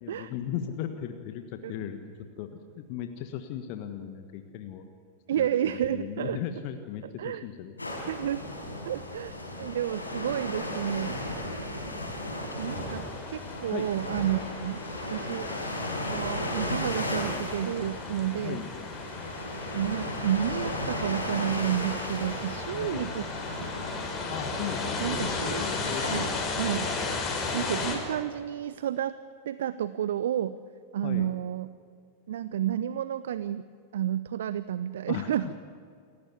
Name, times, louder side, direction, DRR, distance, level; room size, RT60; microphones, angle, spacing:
voice 1, 0.0-2.0 2.4-4.8 5.4-5.5 5.9-7.7 8.2-8.5 12.7-12.8 13.7-13.9 14.7-14.8 18.4-18.7 22.7-23.1 24.3-26.3 31.0-31.3 35.1-35.5, left 10 dB, 45° left, 6 dB, 1.5 m, -37 dB
voice 2, 5.3-6.4 7.2-7.4 8.1-8.5 8.9-11.2 12.6-14.8 15.1-15.5 16.1-18.6 19.7-23.7 25.0-25.6 26.1-26.2 26.6-26.9 27.5-29.2 29.4-30.6 30.9-31.7 32.3-33.7 33.9-35.5, right 10 dB, 60° right, 15 dB, 0.6 m, -31 dB
sound 1, 7.8-26.2, left 1 dB, 85° left, 5.4 m, -35 dB
sound 2, 12.6-28.0, left 3 dB, 25° left, 5.9 m, -35 dB
28.5 x 15.5 x 8.4 m, 2.3 s
figure-of-eight pair, 90°, 0 cm